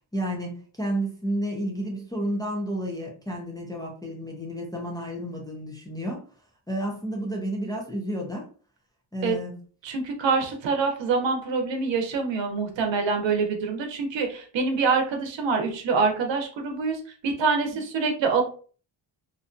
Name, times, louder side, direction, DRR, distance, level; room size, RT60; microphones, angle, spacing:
voice 1, 0.1-6.2 6.7-8.5 9.1-9.5, equal, 10° left, -2 dB, 0.4 m, -31 dB
voice 2, 9.8-18.4, right 4 dB, 75° right, 3 dB, 0.8 m, -25 dB
2.6 x 2.2 x 2.5 m, 0.40 s
wide cardioid pair, 160°, 45 cm